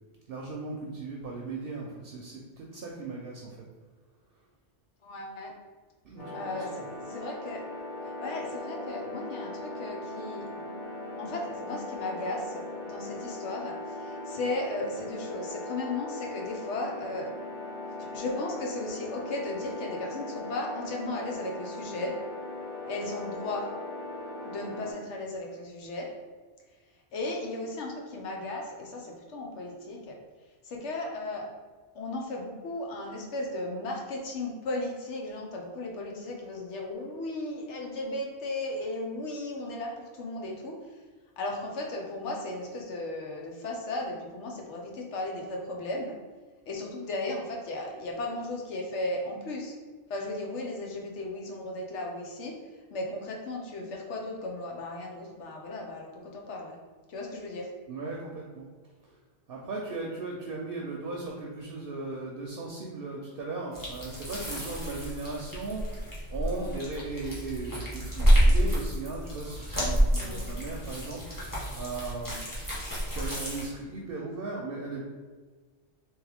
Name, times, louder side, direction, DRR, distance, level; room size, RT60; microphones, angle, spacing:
voice 1, 0.3-3.6 6.0-6.8 57.9-58.7 59.5-72.4 73.1-75.0, right 3 dB, 60° right, -1 dB, 0.7 m, -37 dB
voice 2, 5.0-5.5 6.3-7.6 8.0-10.6 11.2-17.3 18.0-22.2 22.9-23.7 24.4-26.1 27.1-30.2 30.6-31.5 31.9-40.8 41.4-46.1 46.7-49.7 50.1-52.6 52.9-56.8 57.1-57.7 70.2-70.5, left 2 dB, 90° left, 0 dB, 1.1 m, -36 dB
sound 1, 6.2-24.9, left 2 dB, 55° left, 1.4 m, -39 dB
sound 2, 63.7-73.7, equal, 20° left, 1.1 m, -28 dB
3.5 x 3.1 x 3.4 m, 1.4 s
omnidirectional pair, 1.2 m